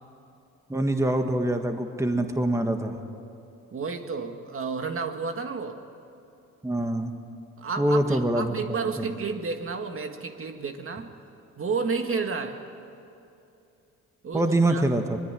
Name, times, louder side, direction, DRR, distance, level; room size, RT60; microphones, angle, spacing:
voice 1, 0.7-3.0 6.6-7.1 7.8-9.0 14.3-15.2, right 1 dB, 10° right, 5 dB, 1.7 m, -25 dB
voice 2, 3.7-5.8 7.6-11.1 11.6-12.6 14.2-14.8, right 5 dB, 45° right, 5 dB, 2.0 m, -31 dB
24.0 x 21.5 x 10.0 m, 2.7 s
cardioid pair, 90°, 30 cm